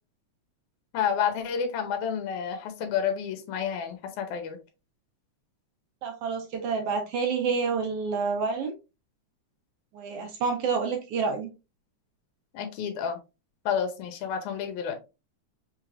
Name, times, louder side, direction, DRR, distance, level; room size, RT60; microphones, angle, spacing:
voice 1, 0.9-4.6 12.5-13.2 13.7-15.0, left 7 dB, 80° left, 7 dB, 2.2 m, -30 dB
voice 2, 6.0-8.7 9.9-11.5, right 5 dB, 70° right, 4 dB, 1.4 m, -28 dB
5.1 x 3.3 x 2.4 m, 0.27 s
omnidirectional pair, 3.5 m